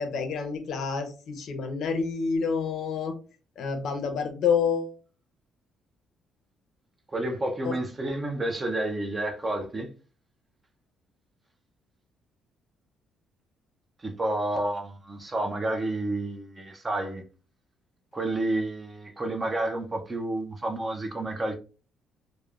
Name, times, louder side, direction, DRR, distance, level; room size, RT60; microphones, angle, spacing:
voice 1, 0.0-3.1 3.6-5.0 7.6-7.7, left 6 dB, 60° left, 0.5 m, -28 dB
voice 2, 7.1-9.9 14.0-17.2 18.1-21.6, right 2 dB, 20° right, 0.4 m, -30 dB
3.0 x 2.0 x 2.3 m
cardioid pair, 145°, 0 cm